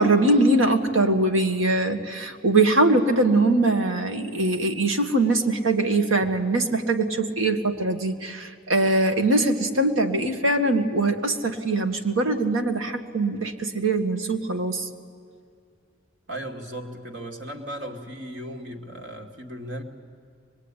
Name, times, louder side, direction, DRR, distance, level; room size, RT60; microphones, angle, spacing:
voice 1, 0.0-14.9, right 2 dB, 85° right, 6 dB, 1.9 m, -22 dB
voice 2, 16.3-19.8, right 1 dB, 65° right, 3 dB, 2.5 m, -36 dB
24.0 x 21.5 x 9.9 m, 2.3 s
head